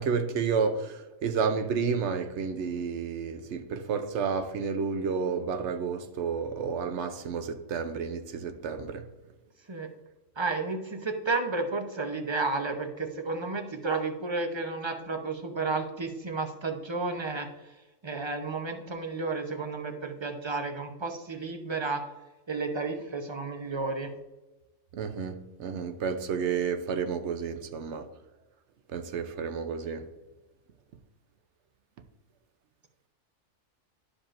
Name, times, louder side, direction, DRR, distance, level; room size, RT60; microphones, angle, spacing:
voice 1, 0.0-9.1 24.9-28.1 28.9-30.1, right 6 dB, 65° right, 0.9 m, -31 dB
voice 2, 10.4-17.5 18.0-22.0 22.5-24.1, right 3 dB, 30° right, 0.5 m, -32 dB
12.0 x 5.0 x 2.5 m
omnidirectional pair, 1.4 m